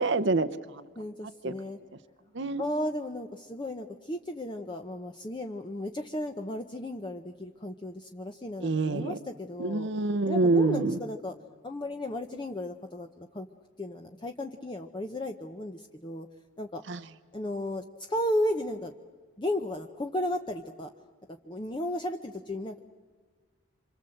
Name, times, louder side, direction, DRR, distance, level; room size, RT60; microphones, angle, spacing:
voice 1, 0.0-0.8 1.4-1.5 2.3-2.6 8.6-9.2 9.6-11.0 16.9-17.0, right 3 dB, 60° right, 12 dB, 0.8 m, -26 dB
voice 2, 1.0-1.8 2.6-9.9 10.3-11.3 11.6-13.5 13.8-16.3 16.6-16.8 17.3-18.9 19.4-20.9 21.4-22.8, left 1 dB, 25° left, 5 dB, 0.9 m, -34 dB
27.5 x 26.0 x 7.8 m, 1.5 s
head